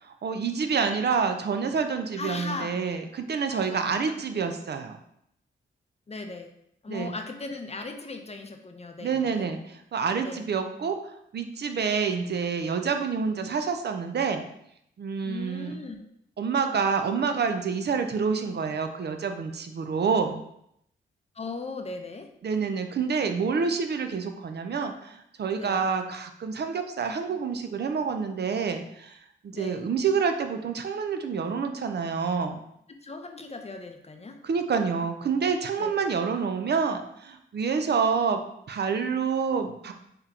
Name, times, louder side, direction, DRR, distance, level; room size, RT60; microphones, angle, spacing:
voice 1, 0.2-5.0 6.9-7.1 9.0-9.6 9.9-11.0 11.3-14.4 15.0-15.8 16.4-20.4 22.4-29.2 29.4-32.6 34.4-38.4 38.7-39.9, right 5 dB, 50° right, 6 dB, 0.5 m, -27 dB
voice 2, 2.2-2.7 3.5-4.1 4.5-4.6 6.1-6.5 6.8-9.5 10.2-10.5 15.2-16.1 21.3-22.3 25.6-25.8 29.5-29.8 33.0-34.4 35.8-35.9, left 3 dB, 30° left, 5 dB, 0.6 m, -38 dB
3.6 x 2.9 x 3.6 m, 0.75 s
cardioid pair, 55°, 21 cm